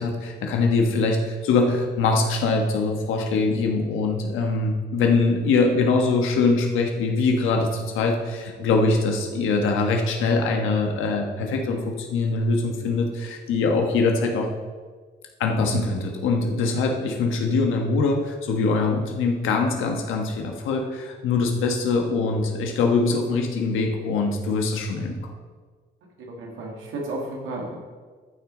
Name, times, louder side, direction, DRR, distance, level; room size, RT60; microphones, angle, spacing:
voice 1, 0.0-14.5 15.4-25.3, left 3 dB, 85° left, 2 dB, 1.3 m, -23 dB
voice 2, 26.2-27.8, right 2 dB, 85° right, -1 dB, 1.8 m, -33 dB
12.5 x 6.1 x 3.9 m, 1.5 s
cardioid pair, 90°, 20 cm